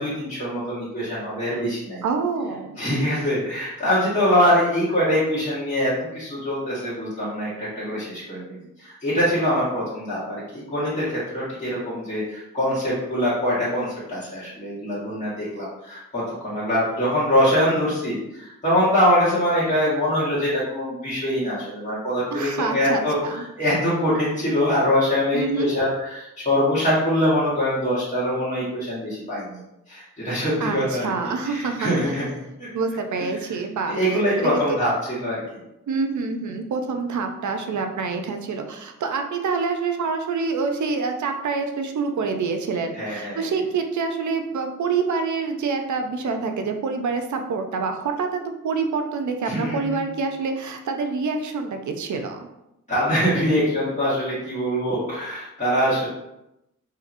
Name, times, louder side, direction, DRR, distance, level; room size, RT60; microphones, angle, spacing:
voice 1, 0.0-2.0 2.8-29.6 29.9-32.7 33.2-33.4 33.9-35.4 42.9-43.4 49.4-50.0 52.9-56.1, equal, 20° left, -10 dB, 1.5 m, -23 dB
voice 2, 2.0-2.8 22.3-23.4 25.3-25.7 30.6-32.1 32.7-34.8 35.9-52.4, right 4 dB, 60° right, 5 dB, 0.5 m, -26 dB
2.9 x 2.7 x 2.5 m, 0.88 s
cardioid pair, 50°, 33 cm